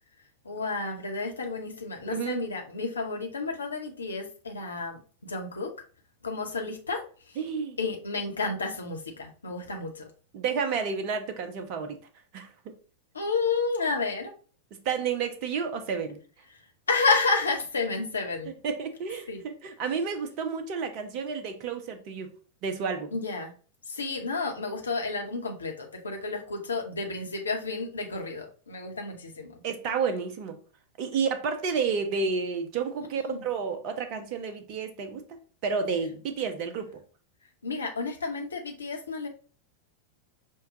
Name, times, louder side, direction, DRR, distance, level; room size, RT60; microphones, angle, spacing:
voice 1, 0.4-5.7 6.2-7.4 7.8-10.1 13.1-14.3 16.9-18.5 19.3-19.4 23.1-23.5 23.9-29.6 33.3-33.4 37.6-39.3, left 3 dB, 75° left, 3 dB, 0.9 m, -31 dB
voice 2, 2.1-2.4 7.4-7.8 10.3-12.0 12.3-12.7 14.8-16.2 18.6-22.3 22.6-23.1 29.6-30.6 31.0-35.2 35.6-37.0, right 5 dB, 40° right, 7 dB, 0.7 m, -30 dB
5.5 x 2.3 x 3.7 m, 0.39 s
figure-of-eight pair, 90°, 0 cm